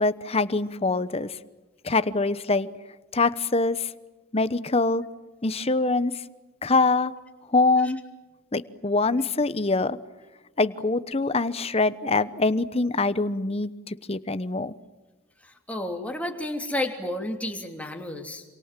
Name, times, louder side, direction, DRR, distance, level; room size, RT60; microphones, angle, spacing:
voice 1, 0.0-1.4 1.8-2.7 3.1-3.9 4.3-5.0 5.4-6.1 6.6-7.1 7.5-8.0 8.5-10.0 10.6-14.7, left 3 dB, 30° left, 14 dB, 0.9 m, -24 dB
voice 2, 15.7-18.4, left 1 dB, 5° left, 3 dB, 3.0 m, -31 dB
27.5 x 27.5 x 7.5 m, 1.2 s
head